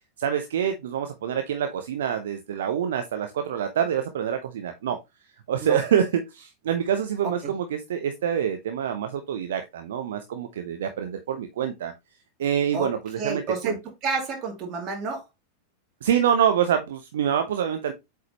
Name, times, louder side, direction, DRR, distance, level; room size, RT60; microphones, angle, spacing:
voice 1, 0.2-5.0 5.5-11.9 12.4-13.8 16.0-17.9, right 8 dB, 60° right, 0.8 m, -26 dB
voice 2, 13.2-13.8 14.0-15.2, right 4 dB, 35° right, 2.6 m, -29 dB
8.0 x 4.8 x 3.0 m
figure-of-eight pair, 90°, 0 cm